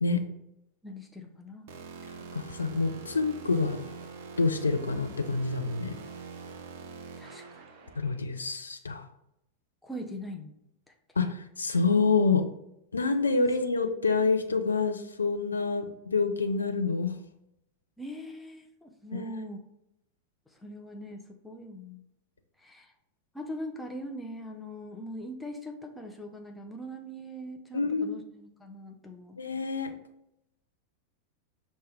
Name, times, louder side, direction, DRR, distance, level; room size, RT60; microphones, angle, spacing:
voice 1, 0.8-1.8 2.0-2.1 7.2-7.6 9.8-10.5 18.0-19.6 20.5-22.0 22.6-22.9 23.3-29.4, equal, 5° left, 2 dB, 0.4 m, -41 dB
sound 1, 1.7-8.2, right 4 dB, 50° right, 0.5 m, -44 dB
voice 2, 2.3-3.8 4.4-5.9 8.0-9.1 11.2-12.5 12.9-17.1 19.1-19.2 27.7-28.2 29.4-29.9, left 4 dB, 75° left, 7 dB, 0.3 m, -27 dB
5.9 x 2.1 x 3.3 m, 0.82 s
figure-of-eight pair, 90°, 0 cm